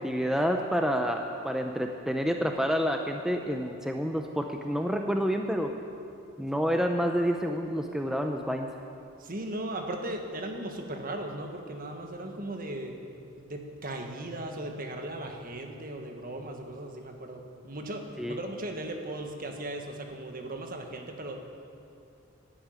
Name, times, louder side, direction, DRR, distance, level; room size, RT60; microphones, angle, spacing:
voice 1, 0.0-5.7 6.4-8.7 18.2-18.4, equal, 5° right, 3 dB, 0.6 m, -28 dB
voice 2, 9.2-13.0 13.4-21.4, right 1 dB, 45° right, 3 dB, 1.6 m, -37 dB
12.0 x 11.0 x 9.1 m, 2.5 s
head